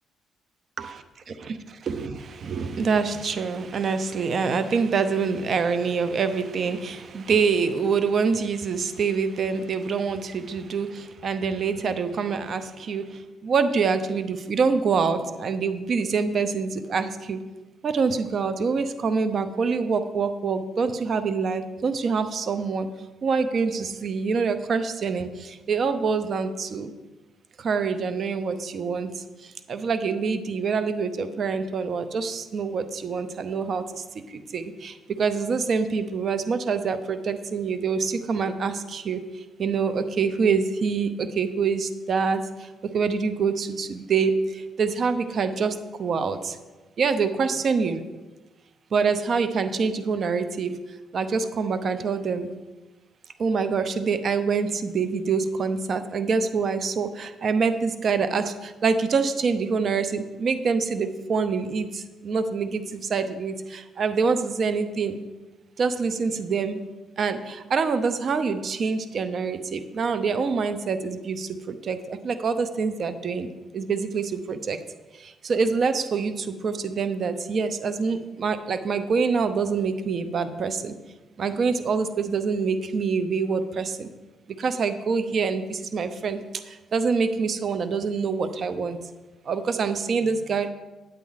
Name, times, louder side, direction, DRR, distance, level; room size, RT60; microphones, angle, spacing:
voice 1, 1.3-17.4 17.8-22.9 23.2-26.9 27.6-42.7 42.9-46.6 47.0-48.0 48.9-50.8 51.1-52.5 53.4-65.2 65.8-66.8 67.2-74.8 75.2-80.9 81.4-84.1 84.6-89.0 89.5-90.7, right 5 dB, 55° right, 11 dB, 0.8 m, -26 dB
8.9 x 8.3 x 4.1 m, 1.2 s
supercardioid pair, 60°, 0 cm